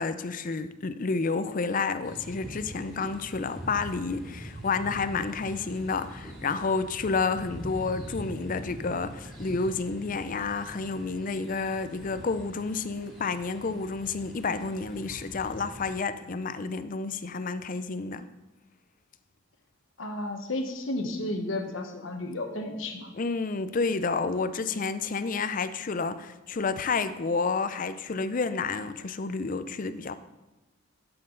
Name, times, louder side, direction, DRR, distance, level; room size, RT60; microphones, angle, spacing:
voice 1, 0.0-18.3 23.1-30.1, left 4 dB, 40° left, 12 dB, 0.5 m, -30 dB
sound 1, 2.0-16.0, equal, ahead, 2.5 m, -43 dB
voice 2, 20.0-23.1, left 1 dB, 70° left, 4 dB, 1.2 m, -32 dB
11.5 x 7.7 x 3.9 m, 1.0 s
head